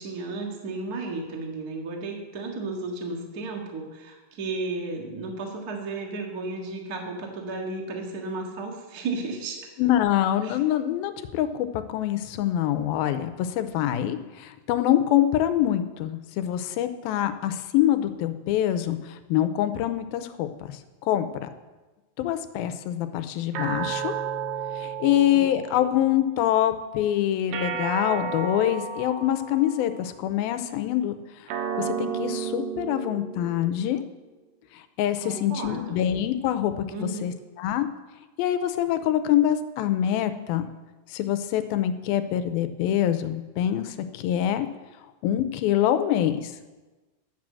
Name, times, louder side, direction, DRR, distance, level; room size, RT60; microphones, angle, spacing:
voice 1, 0.0-9.6 10.4-10.5 25.1-25.5 35.2-36.0 36.9-37.3, right 3 dB, 40° right, 1 dB, 1.4 m, -33 dB
voice 2, 9.8-21.5 22.2-24.1 24.8-31.5 31.8-34.0 34.7-37.9 38.4-40.7 41.1-44.7 45.2-46.5, left 11 dB, 90° left, 10 dB, 2.5 m, -25 dB
sound 1, 23.5-26.1 27.5-30.1 31.5-34.1, right 7 dB, 80° right, 2.6 m, -32 dB
11.5 x 7.5 x 7.5 m, 1.2 s
omnidirectional pair, 4.2 m